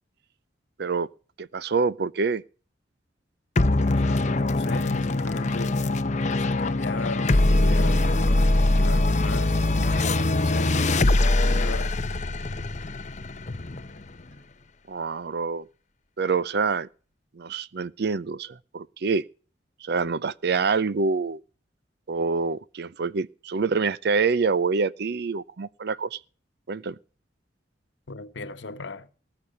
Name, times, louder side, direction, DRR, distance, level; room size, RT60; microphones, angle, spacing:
voice 1, 1.4-2.4 14.9-15.7 16.2-16.9 17.3-19.2 19.8-21.4 22.1-26.2 26.7-27.0, right 4 dB, 60° right, 0.5 m, -26 dB
sound 1, 3.6-14.3, left 2 dB, 40° left, 0.8 m, -23 dB
voice 2, 3.8-5.8 6.2-10.0 10.4-12.0 28.1-29.1, left 3 dB, 85° left, 1.1 m, -36 dB
19.0 x 6.8 x 5.5 m
head